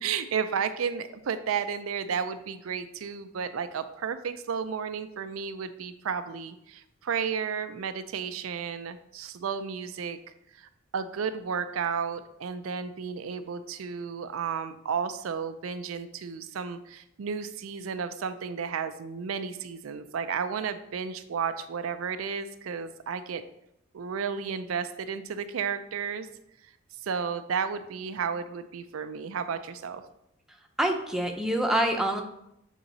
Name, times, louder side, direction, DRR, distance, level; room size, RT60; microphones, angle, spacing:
voice 1, 0.0-10.2 10.5-23.4 23.9-26.3 27.0-30.0, right 6 dB, 85° right, 10 dB, 0.4 m, -33 dB
voice 2, 30.8-32.2, right 1 dB, 5° right, 2 dB, 0.6 m, -26 dB
7.3 x 3.8 x 4.0 m, 0.82 s
head